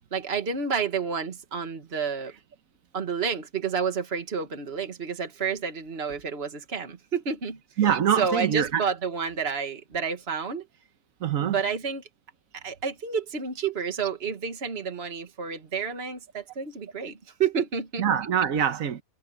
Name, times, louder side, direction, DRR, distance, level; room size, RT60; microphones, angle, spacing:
voice 1, 0.1-2.3 2.9-7.6 8.2-10.7 11.4-12.0 12.5-18.1, right 6 dB, 50° right, 1.9 m, -30 dB
voice 2, 7.8-8.8 11.2-11.5 18.0-19.0, right 8 dB, 85° right, 1.5 m, -24 dB
omnidirectional pair, 1.4 m